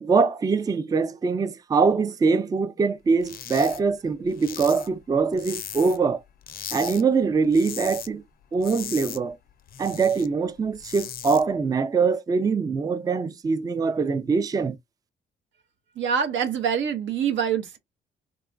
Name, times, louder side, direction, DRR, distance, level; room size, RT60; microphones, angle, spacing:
voice 1, 0.0-6.2 6.7-8.2 8.5-9.4 9.8-14.8, right 4 dB, 20° right, 0.3 m, -23 dB
sound 1, 3.2-3.8 4.1-6.1 6.4-7.0 7.3-8.1 8.4-10.3 10.6-11.4, left 9 dB, 50° left, 0.5 m, -38 dB
voice 2, 16.0-17.8, right 7 dB, 70° right, 0.7 m, -25 dB
2.9 x 2.3 x 2.4 m
cardioid pair, 90°, 20 cm